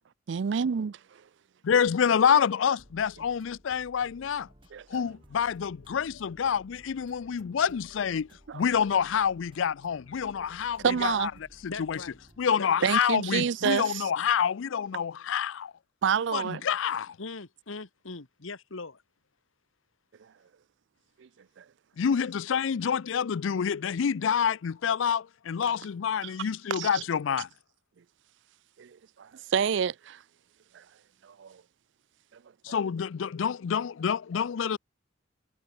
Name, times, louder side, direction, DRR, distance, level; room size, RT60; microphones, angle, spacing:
voice 1, 0.3-0.9 4.7-5.0 8.5-8.6 10.8-11.3 12.8-14.1 16.0-16.6 21.2-21.3 21.6-21.7 26.2-27.0 28.8-30.2 30.7-30.8 31.2-31.6, right 7 dB, 65° right, 0.4 m, -29 dB
voice 2, 1.7-4.5 4.9-8.3 8.5-11.3 11.6-12.0 12.4-15.7 16.3-17.2 22.0-27.5 32.6-34.8, left 7 dB, 75° left, 0.4 m, -27 dB
sound 1, 2.8-12.6, equal, 25° right, 7.6 m, -57 dB
voice 3, 11.7-12.1 12.6-12.9 17.2-19.0, left 3 dB, 90° left, 1.6 m, -40 dB
head